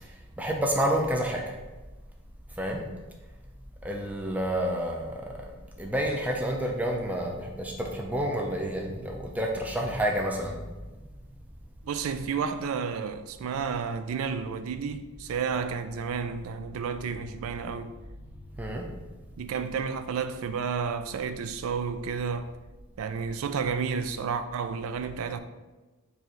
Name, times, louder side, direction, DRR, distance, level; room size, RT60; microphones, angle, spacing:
voice 1, 0.0-1.5 2.6-2.8 3.8-5.5 5.8-10.6 18.6-18.9, equal, 5° right, 0.4 m, -29 dB
voice 2, 11.8-17.9 19.4-22.5 23.0-25.4, right 6 dB, 65° right, 0.3 m, -31 dB
4.6 x 2.6 x 4.3 m
head